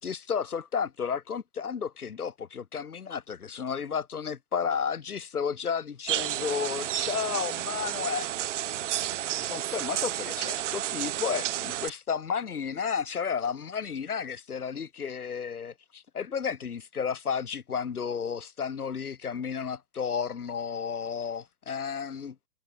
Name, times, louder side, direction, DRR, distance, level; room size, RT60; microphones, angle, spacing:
voice 1, 0.0-8.3 9.4-22.4, left 6 dB, 85° left, 4.1 m, -32 dB
sound 1, 6.1-11.9, right 13 dB, 55° right, 0.7 m, -31 dB
hypercardioid pair, 145°, 43 cm